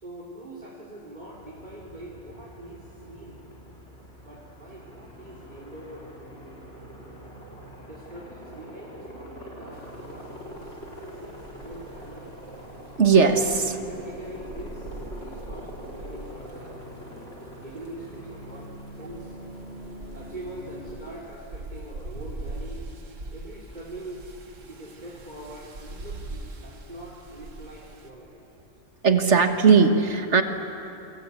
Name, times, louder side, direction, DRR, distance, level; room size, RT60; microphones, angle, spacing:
voice 1, 0.0-3.4 4.2-6.1 7.8-12.4 13.3-16.9 17.6-18.7 19.0-19.4 20.1-22.8 23.3-24.2 24.7-28.4, right 1 dB, 35° right, -5 dB, 3.7 m, -43 dB
Aircraft, 1.1-21.0, equal, 55° left, 4.4 m, -43 dB
sound 1, 9.7-28.1, right 2 dB, 85° right, 2.2 m, -43 dB
voice 2, 13.0-13.8 29.0-30.4, right 5 dB, 65° right, 6 dB, 1.9 m, -18 dB
29.5 x 23.0 x 8.5 m, 2.9 s
omnidirectional pair, 1.3 m